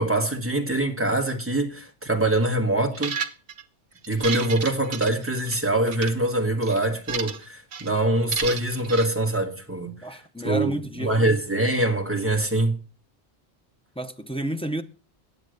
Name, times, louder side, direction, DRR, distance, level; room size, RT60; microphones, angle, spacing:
voice 1, 0.0-3.2 4.1-10.2 10.4-10.7 11.0-12.8, right 1 dB, 10° right, 1.4 m, -24 dB
sound 1, 2.9-3.6 4.0-5.6 5.9-6.1 6.6-7.4 7.7-7.9 8.3-9.1, right 6 dB, 60° right, 1.0 m, -32 dB
voice 2, 10.0-11.1 14.0-14.8, right 1 dB, 10° left, 0.4 m, -30 dB
9.5 x 7.4 x 6.4 m
omnidirectional pair, 1.2 m